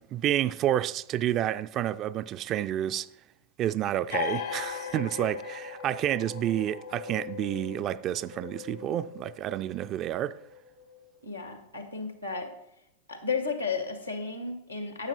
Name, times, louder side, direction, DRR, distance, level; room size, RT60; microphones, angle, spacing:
voice 1, 0.0-3.1 3.6-10.4, right 12 dB, 35° right, 0.4 m, -29 dB
sound 1, 4.1-11.3, left 8 dB, 65° left, 1.4 m, -39 dB
voice 2, 11.2-12.5 13.1-15.1, left 4 dB, 85° left, 1.9 m, -33 dB
12.0 x 8.6 x 4.1 m
figure-of-eight pair, 90°, 0 cm